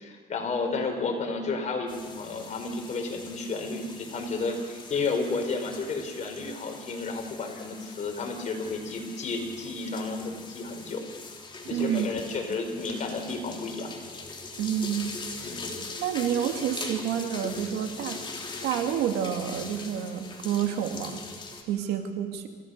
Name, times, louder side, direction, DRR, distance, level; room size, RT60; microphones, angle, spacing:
voice 1, 0.0-11.0 11.7-13.9 15.4-15.7, left 3 dB, 45° left, 3 dB, 4.8 m, -32 dB
sound 1, 1.9-21.6, left 3 dB, 30° left, 3.3 m, -41 dB
voice 2, 11.7-12.1 14.6-15.1 16.0-18.2 18.6-21.2 21.7-22.5, right 9 dB, 90° right, 5 dB, 2.2 m, -29 dB
27.0 x 16.0 x 6.6 m, 1.5 s
cardioid pair, 110°, 17 cm